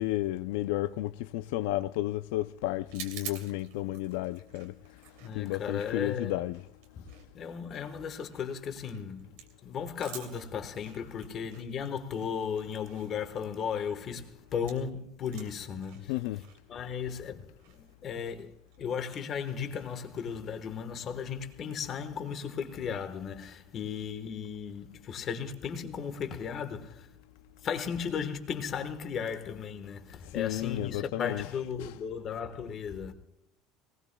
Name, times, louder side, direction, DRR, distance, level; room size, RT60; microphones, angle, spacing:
voice 1, 0.0-4.8 5.3-6.6 16.1-16.4 30.3-32.0, left 16 dB, 85° left, 0.4 m, -32 dB
sound 1, 2.9-14.9 15.2-20.5, right 9 dB, 85° right, 2.6 m, -50 dB
voice 2, 5.2-6.4 7.0-9.4 9.6-16.1 16.7-27.1 27.6-33.1, left 7 dB, 30° left, 1.3 m, -36 dB
22.0 x 19.0 x 2.3 m
cardioid pair, 180°, 0 cm